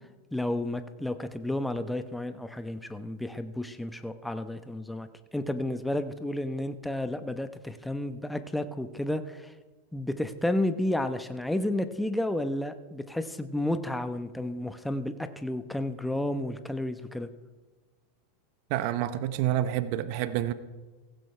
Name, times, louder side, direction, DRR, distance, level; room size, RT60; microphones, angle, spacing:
voice 1, 0.3-9.5 9.9-17.3, left 1 dB, 5° left, 9 dB, 1.0 m, -31 dB
voice 2, 18.7-20.5, right 12 dB, 55° right, 13 dB, 0.9 m, -28 dB
17.0 x 15.5 x 3.3 m, 1.2 s
hypercardioid pair, 100°, 0 cm